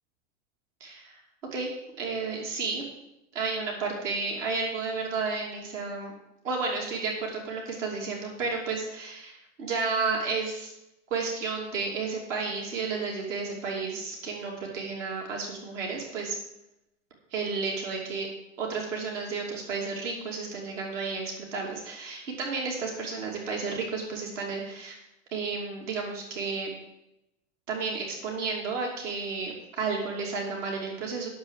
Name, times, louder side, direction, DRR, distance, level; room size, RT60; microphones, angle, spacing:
voice 1, 0.8-1.2 1.5-1.7 2.0-2.8 3.3-6.1 6.4-10.7 11.1-16.4 17.3-18.3 18.6-24.9 25.3-26.7 27.7-31.3, right 4 dB, 75° right, 0 dB, 2.8 m, -32 dB
9.6 x 6.9 x 7.3 m, 0.90 s
hypercardioid pair, 100°, 38 cm